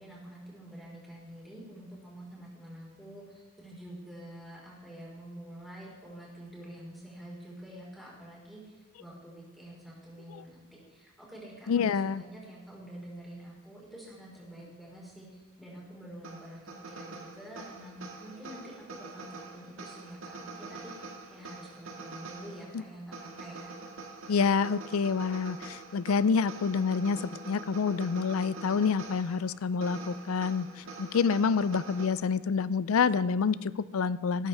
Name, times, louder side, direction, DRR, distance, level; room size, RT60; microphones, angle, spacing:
voice 1, 0.0-8.7 9.0-23.7, right 1 dB, ahead, -5 dB, 4.5 m, -47 dB
voice 2, 11.7-12.2 22.7-22.8 24.3-34.5, left 5 dB, 85° left, 18 dB, 0.4 m, -28 dB
sound 1, 16.2-32.1, right 3 dB, 75° right, 1.7 m, -45 dB
18.0 x 13.0 x 3.5 m, 1.2 s
head